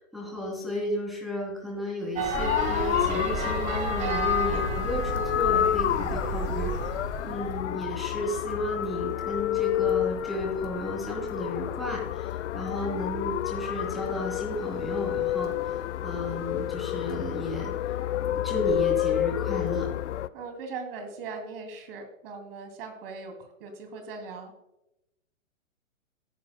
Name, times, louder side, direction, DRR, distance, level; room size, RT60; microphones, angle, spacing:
voice 1, 0.0-18.0 18.3-19.9, left 1 dB, ahead, -2 dB, 3.1 m, -33 dB
sound 1, 2.1-7.5, right 4 dB, 20° right, 1.3 m, -32 dB
sound 2, 2.3-20.3, left 12 dB, 60° left, 0.5 m, -29 dB
voice 2, 20.3-24.5, right 4 dB, 45° right, 5 dB, 2.6 m, -40 dB
14.5 x 9.3 x 2.2 m, 0.87 s
hypercardioid pair, 145°, 41 cm